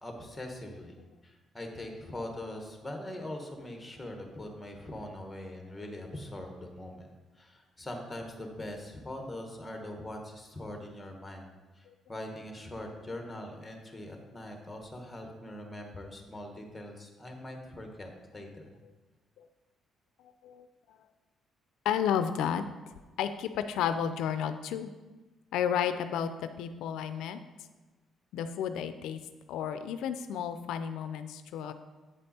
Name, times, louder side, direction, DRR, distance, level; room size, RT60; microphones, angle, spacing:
voice 1, 0.0-0.9 1.2-18.7, left 1 dB, 10° left, 3 dB, 1.3 m, -42 dB
voice 2, 20.4-21.0 21.8-22.6 23.2-24.9 25.5-27.4 28.3-29.2 29.5-31.7, left 8 dB, 90° left, 10 dB, 0.4 m, -32 dB
8.3 x 5.2 x 4.2 m, 1.2 s
cardioid pair, 120°, 0 cm